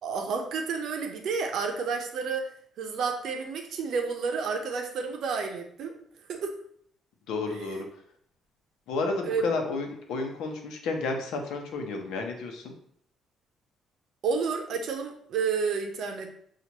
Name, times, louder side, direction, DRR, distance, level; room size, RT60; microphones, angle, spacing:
voice 1, 0.0-5.9 6.3-6.5 7.6-7.8 9.2-9.4 14.2-16.3, right 5 dB, 55° right, 4 dB, 0.6 m, -30 dB
voice 2, 7.3-7.9 8.9-12.7, left 3 dB, 90° left, 3 dB, 0.8 m, -31 dB
5.9 x 2.4 x 2.9 m, 0.64 s
cardioid pair, 175°, 0 cm